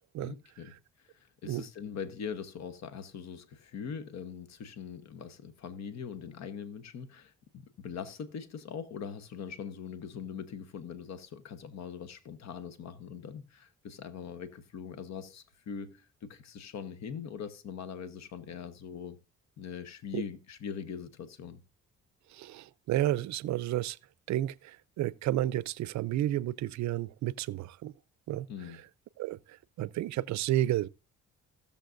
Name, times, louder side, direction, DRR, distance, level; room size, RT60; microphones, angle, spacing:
voice 1, 0.2-0.7 1.0-19.2 19.6-21.6 28.5-28.8, left 7 dB, 65° left, 1.0 m, -42 dB
voice 2, 22.3-24.0 24.3-27.9 28.3-28.5 29.2-30.9, right 14 dB, 70° right, 0.5 m, -31 dB
16.5 x 6.8 x 2.5 m
cardioid pair, 90°, 30 cm